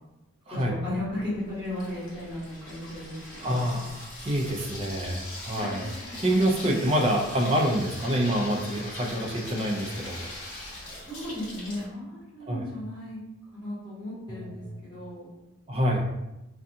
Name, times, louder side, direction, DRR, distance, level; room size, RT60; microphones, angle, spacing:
voice 1, 0.5-3.7 5.6-6.2 11.1-13.2 13.5-15.3, left 1 dB, 20° left, -11 dB, 1.2 m, -36 dB
Water tap faucet / Sink (filling or washing), 0.8-11.9, left 1 dB, 70° left, 1.4 m, -41 dB
voice 2, 3.4-3.9 4.2-5.9 6.2-10.3 12.5-12.6 14.3-14.8 15.7-16.1, equal, 25° right, 0 dB, 0.3 m, -26 dB
2.5 x 2.3 x 2.6 m, 0.95 s
head